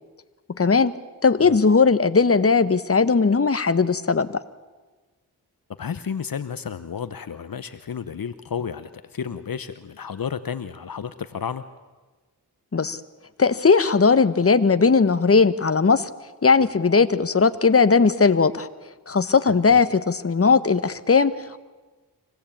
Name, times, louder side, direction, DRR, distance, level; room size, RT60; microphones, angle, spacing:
voice 1, 0.6-0.9 1.2-4.4 12.7-13.0 13.4-16.1 16.4-18.7 19.1-21.3, left 4 dB, 35° left, 12 dB, 1.3 m, -18 dB
voice 2, 5.8-11.6 19.7-19.8, left 7 dB, 60° left, 12 dB, 1.1 m, -32 dB
25.5 x 17.5 x 8.7 m, 1.3 s
cardioid pair, 45°, 40 cm